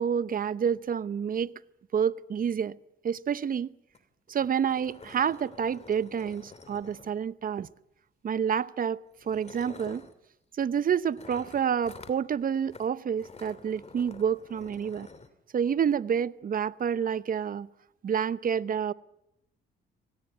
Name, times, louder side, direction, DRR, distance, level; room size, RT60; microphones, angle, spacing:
voice 1, 0.0-1.5 1.9-2.8 3.0-3.7 4.3-7.7 8.2-10.0 10.5-15.1 15.5-17.7 18.0-18.9, right 7 dB, 45° right, 0.8 m, -28 dB
sound 1, 3.9-4.0 4.3-4.4 4.7-7.4 8.4-8.6 9.2-10.1 11.2-12.2 12.7-12.9 13.2-15.3, left 4 dB, 30° left, 2.7 m, -48 dB
26.0 x 19.0 x 8.7 m
cardioid pair, 90°, 20 cm